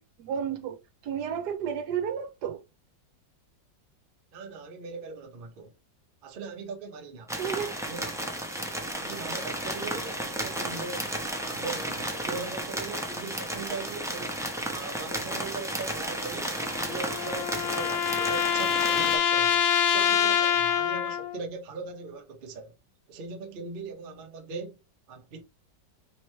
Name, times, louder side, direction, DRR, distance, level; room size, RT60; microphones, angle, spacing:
voice 1, 0.0-2.6 7.4-7.8, right 8 dB, 70° right, 1.2 m, -32 dB
voice 2, 4.3-5.7 6.2-7.4 7.8-8.2 8.9-11.1 11.4-14.4 14.7-16.6 16.9-19.6 19.9-22.7 23.1-24.8 25.1-25.4, right 4 dB, 45° right, 0.7 m, -40 dB
sound 1, 7.3-19.2, right 1 dB, 5° right, 0.3 m, -33 dB
sound 2, 16.6-21.4, left 8 dB, 70° left, 1.1 m, -25 dB
5.2 x 3.0 x 3.2 m
omnidirectional pair, 1.9 m